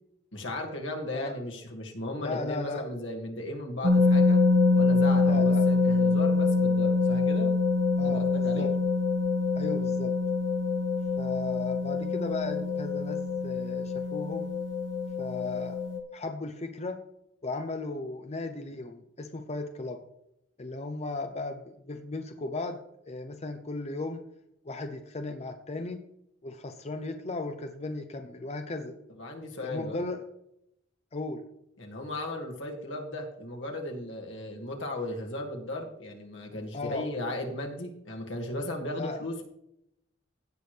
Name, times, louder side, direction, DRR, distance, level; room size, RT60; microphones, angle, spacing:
voice 1, 0.3-4.4 4.7-7.5 8.0-8.7 29.2-30.0 31.8-39.4, left 1 dB, 80° left, 1 dB, 2.1 m, -36 dB
voice 2, 2.2-2.9 5.2-5.6 8.0-8.3 8.6-8.7 9.6-10.1 11.2-14.5 15.2-15.8 16.1-17.0 17.4-20.0 20.6-21.6 21.9-22.8 23.1-24.2 24.6-26.0 26.4-28.9 29.6-30.2 31.1-31.4 36.7-37.1 38.9-39.2, left 2 dB, 35° left, 6 dB, 0.7 m, -36 dB
sound 1, 3.8-16.0, left 3 dB, 80° right, 1.2 m, -25 dB
16.5 x 6.2 x 3.3 m, 0.79 s
head